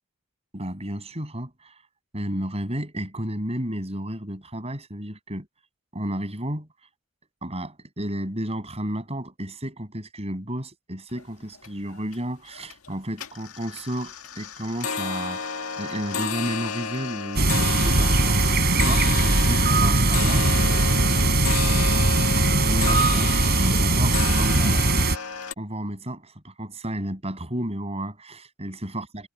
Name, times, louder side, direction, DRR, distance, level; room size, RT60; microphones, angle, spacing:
voice 1, 0.5-1.8 2.1-5.5 5.9-6.7 7.4-15.4 15.8-18.4 18.7-20.5 21.9-22.1 22.4-24.9 25.6-29.3, right 1 dB, 30° right, 7.3 m, -32 dB
sound 1, 11.2-11.3 11.6-12.2 12.6-12.9 13.2-25.5, left 5 dB, 85° left, 1.7 m, -31 dB
sound 2, 17.4-25.2, right 2 dB, 50° right, 3.4 m, -20 dB
head